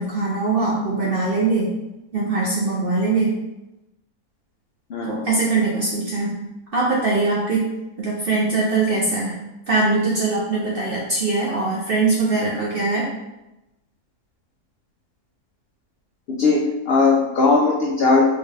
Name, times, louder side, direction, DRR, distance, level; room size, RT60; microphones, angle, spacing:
voice 1, 0.0-1.7 2.1-3.4 5.0-6.4 6.7-7.7 8.0-9.4 9.7-13.1, right 3 dB, 55° right, -5 dB, 0.6 m, -21 dB
voice 2, 16.3-18.3, left 3 dB, 75° left, -2 dB, 0.5 m, -18 dB
4.5 x 2.4 x 3.2 m, 0.95 s
omnidirectional pair, 1.7 m